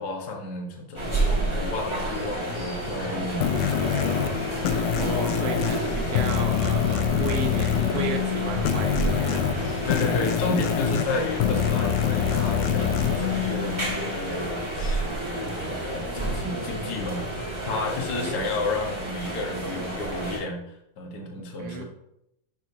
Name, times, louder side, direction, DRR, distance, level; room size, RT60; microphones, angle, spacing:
voice 1, 0.0-3.9 9.8-17.2 17.6-20.6 21.0-21.8, left 3 dB, 50° left, 0 dB, 1.2 m, -32 dB
sound 1, 0.9-20.4, right 2 dB, 20° right, 0.7 m, -31 dB
sound 2, 3.4-14.6, left 9 dB, 75° left, 2.1 m, -26 dB
voice 2, 5.0-9.5 18.1-18.4 21.6-21.8, right 5 dB, 60° right, 2 dB, 1.7 m, -34 dB
11.0 x 6.1 x 2.9 m, 0.81 s
omnidirectional pair, 3.9 m